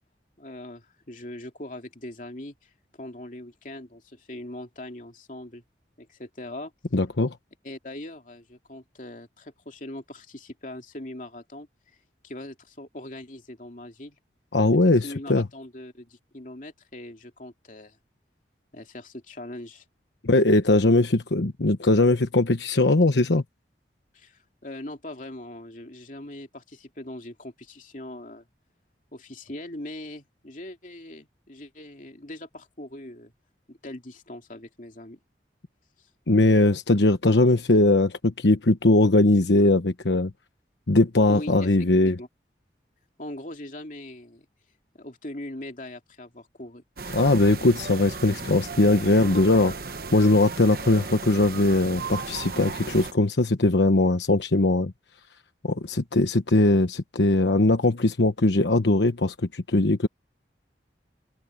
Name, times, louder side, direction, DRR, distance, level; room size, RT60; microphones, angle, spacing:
voice 1, 0.4-5.6 6.0-6.7 7.6-12.0 12.2-14.2 14.8-18.0 18.7-19.8 24.1-28.4 29.1-33.3 33.7-35.2 36.0-36.1 41.3-41.8 42.0-42.3 43.2-44.4 44.9-47.3, left 1 dB, 45° left, 2.8 m, -41 dB
voice 2, 6.9-7.3 14.5-15.5 20.2-23.4 36.3-40.3 40.9-42.1 47.1-49.7 50.1-54.9 55.6-60.1, left 2 dB, 80° left, 1.1 m, -20 dB
sound 1, 47.0-53.1, right 4 dB, 55° right, 1.1 m, -35 dB
head